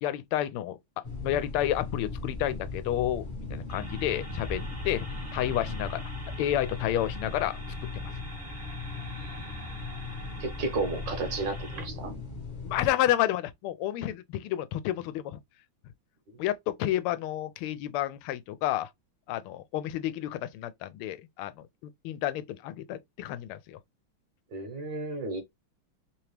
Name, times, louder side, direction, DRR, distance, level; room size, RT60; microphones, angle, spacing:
voice 1, 0.0-3.2 3.5-5.1 5.3-6.0 6.4-7.6 7.9-8.1 12.6-15.4 16.4-18.9 19.3-21.5 22.0-23.8, left 12 dB, 90° left, 1.5 m, -30 dB
sound 1, 1.0-12.9, left 3 dB, 35° left, 0.7 m, -38 dB
sound 2, 3.7-11.9, right 2 dB, 25° right, 0.8 m, -46 dB
voice 2, 10.4-12.1 24.5-25.4, right 3 dB, 65° right, 1.5 m, -32 dB
3.7 x 2.9 x 3.2 m
omnidirectional pair, 2.3 m